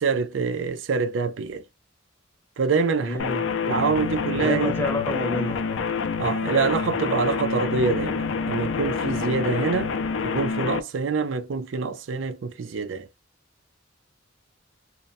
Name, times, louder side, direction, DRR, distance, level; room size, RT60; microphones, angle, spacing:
voice 1, 0.0-1.6 2.6-3.2 3.7-4.7 6.2-9.9 10.2-13.1, right 5 dB, 80° right, 0.4 m, -25 dB
voice 2, 3.0-3.5 4.4-5.9, left 2 dB, 10° left, 0.6 m, -28 dB
sound 1, 3.2-10.8, left 5 dB, 80° left, 0.4 m, -27 dB
2.7 x 2.1 x 2.4 m
head